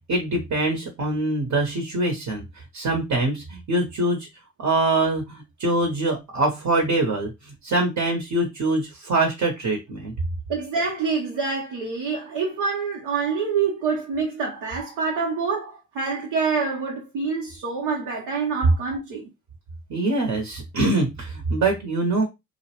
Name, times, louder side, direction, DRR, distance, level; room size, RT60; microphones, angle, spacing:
voice 1, 0.1-2.4 2.7-4.3 4.6-7.3 7.6-10.1 19.9-22.2, right 2 dB, 50° right, 1.0 m, -24 dB
voice 2, 10.5-19.3, right 5 dB, 70° right, 0.8 m, -26 dB
2.4 x 2.0 x 2.9 m
hypercardioid pair, 50°, 38 cm